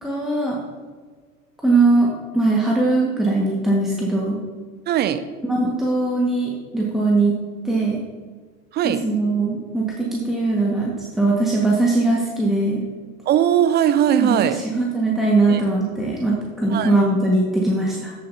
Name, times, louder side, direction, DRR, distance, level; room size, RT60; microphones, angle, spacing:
voice 1, 0.0-0.6 1.6-4.4 5.5-7.4 7.6-8.0 8.8-12.8 14.2-14.4 14.6-18.1, right 2 dB, ahead, -4 dB, 1.4 m, -20 dB
voice 2, 4.9-5.2 8.7-9.0 13.3-14.6 15.5-15.6 16.7-16.9, right 10 dB, 25° right, 11 dB, 0.5 m, -19 dB
14.0 x 7.2 x 2.7 m, 1.5 s
figure-of-eight pair, 80°, 44 cm